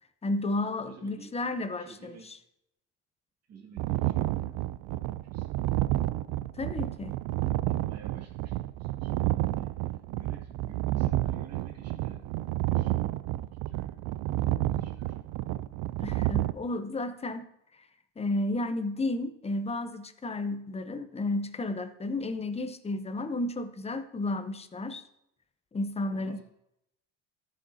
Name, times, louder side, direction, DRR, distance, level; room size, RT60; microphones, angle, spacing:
voice 1, 0.2-2.2 6.5-7.1 16.0-17.4 18.2-25.0 25.7-26.4, left 2 dB, 15° left, 10 dB, 0.7 m, -32 dB
voice 2, 0.8-1.3 1.8-2.3 3.5-4.6 4.9-5.6 6.8-6.9 7.7-15.2 26.1-26.4, right 6 dB, 40° right, 0 dB, 2.2 m, -52 dB
sound 1, 3.8-16.5, right 16 dB, 60° right, 0.5 m, -30 dB
14.0 x 6.4 x 2.7 m, 0.82 s
supercardioid pair, 85°, 38 cm